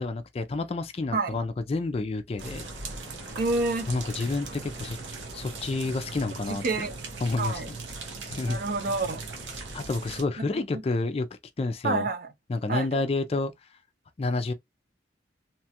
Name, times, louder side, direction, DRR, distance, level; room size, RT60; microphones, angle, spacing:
voice 1, 0.0-2.6 3.9-5.0 5.3-6.6 7.2-7.7 8.3-8.6 9.7-11.3 11.6-12.1 12.5-13.5 14.2-14.5, left 3 dB, 30° left, 0.3 m, -29 dB
sound 1, 2.4-10.2, right 3 dB, 75° right, 0.8 m, -39 dB
voice 2, 3.4-3.9 6.5-7.0 7.4-7.7 8.5-9.2 10.7-10.8 11.8-12.3 12.7-12.9, right 3 dB, 50° right, 0.5 m, -28 dB
2.9 x 2.2 x 2.8 m
head